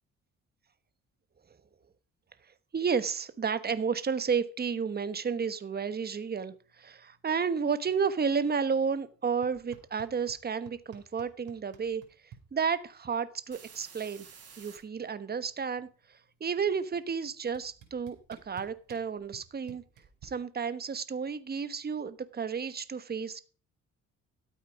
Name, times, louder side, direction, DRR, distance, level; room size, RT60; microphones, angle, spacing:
voice 1, 2.7-12.0 12.5-14.3 14.6-19.8 20.2-23.4, right 6 dB, 30° right, 13 dB, 1.2 m, -32 dB
sound 1, 6.1-6.2 7.0-9.1 13.5-14.8 17.2-19.4 19.7-19.8, right 7 dB, 55° right, 4.5 m, -55 dB
sound 2, 9.4-10.4 10.7-12.4 13.7-13.8 14.0-14.4 14.7-16.1 17.0-17.1 17.5-20.3, right 8 dB, 80° right, 5.0 m, -53 dB
13.0 x 8.5 x 5.1 m, 0.39 s
cardioid pair, 90°, 30 cm